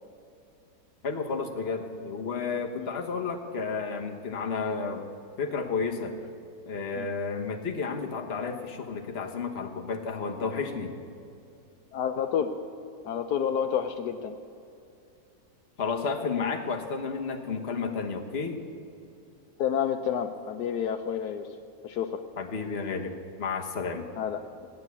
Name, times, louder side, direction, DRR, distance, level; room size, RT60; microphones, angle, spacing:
voice 1, 1.0-5.0 5.4-6.1 6.7-11.0 15.8-18.6 22.4-24.1, left 5 dB, 40° left, 3 dB, 1.4 m, -32 dB
voice 2, 11.9-12.6 13.0-14.3 19.6-21.5 21.8-22.2 24.2-24.7, left 8 dB, 75° left, 7 dB, 1.2 m, -29 dB
17.0 x 9.7 x 8.3 m, 2.6 s
omnidirectional pair, 1.8 m